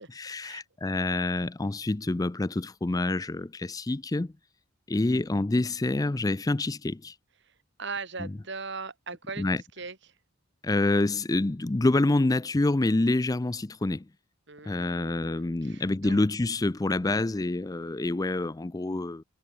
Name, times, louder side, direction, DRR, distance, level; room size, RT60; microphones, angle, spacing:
voice 1, 0.0-4.3 4.9-7.1 8.2-8.3 9.4-9.6 10.6-14.1 14.6-19.2, left 2 dB, 20° left, 0.4 m, -27 dB
voice 2, 7.8-9.5 9.8-10.1 14.5-16.2, right 4 dB, 60° right, 5.3 m, -39 dB
head